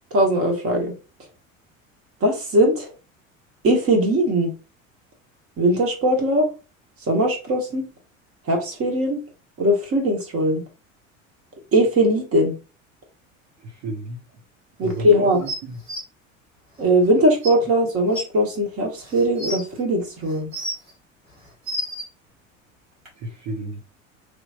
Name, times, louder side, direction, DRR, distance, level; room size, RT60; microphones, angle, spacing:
voice 1, 0.1-0.9 2.2-2.9 3.6-4.5 5.6-6.5 7.1-7.9 8.5-9.2 9.6-10.6 11.7-12.5 14.8-15.4 16.8-20.5, equal, 35° right, 3 dB, 1.4 m, -20 dB
voice 2, 13.6-14.2 14.8-15.8 23.1-23.8, right 2 dB, 55° right, -3 dB, 1.2 m, -33 dB
sound 1, 15.5-16.0 17.0-17.1 17.4-17.5 18.1-18.2 19.0-19.6 20.3-20.9 21.4-22.1 23.1-23.2, equal, 85° right, 1.5 m, -30 dB
3.3 x 2.9 x 2.5 m, 0.32 s
figure-of-eight pair, 70°, 39 cm